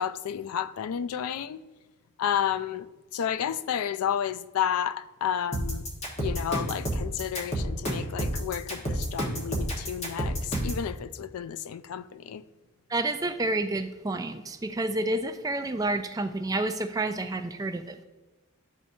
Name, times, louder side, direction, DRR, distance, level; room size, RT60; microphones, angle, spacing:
voice 1, 0.0-1.6 2.2-5.8 6.2-12.4, left 9 dB, 85° left, 0.3 m, -31 dB
sound 1, 5.5-10.8, equal, 30° left, 1.3 m, -29 dB
voice 2, 12.9-18.0, right 2 dB, 15° right, 0.3 m, -29 dB
12.5 x 4.2 x 2.7 m
head